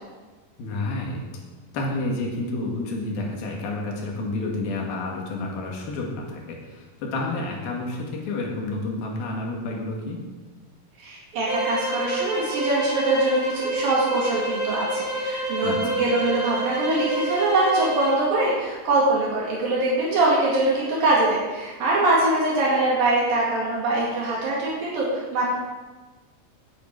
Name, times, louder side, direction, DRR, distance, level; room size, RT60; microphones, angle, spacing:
voice 1, 0.6-1.4 1.7-10.2 15.6-16.0, left 2 dB, 85° left, 0 dB, 3.9 m, -30 dB
voice 2, 11.0-25.5, right 2 dB, 75° right, -5 dB, 4.1 m, -23 dB
sound 1, 11.4-18.2, right 1 dB, 30° right, 3.7 m, -28 dB
19.0 x 8.5 x 4.8 m, 1.3 s
omnidirectional pair, 4.1 m